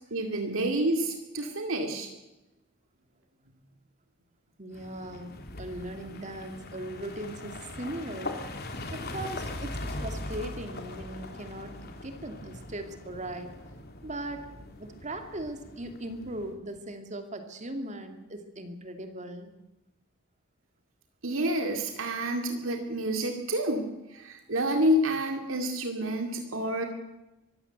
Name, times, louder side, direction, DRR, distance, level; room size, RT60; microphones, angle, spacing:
voice 1, 0.1-2.1 21.2-26.9, right 1 dB, 80° right, 4 dB, 2.3 m, -29 dB
voice 2, 4.6-8.4 8.9-13.6 14.0-14.5 14.8-19.5, right 1 dB, 35° right, 6 dB, 2.6 m, -39 dB
sound 1, 4.7-16.5, left 2 dB, 50° left, 3.1 m, -41 dB
24.0 x 15.5 x 8.1 m, 1.0 s
head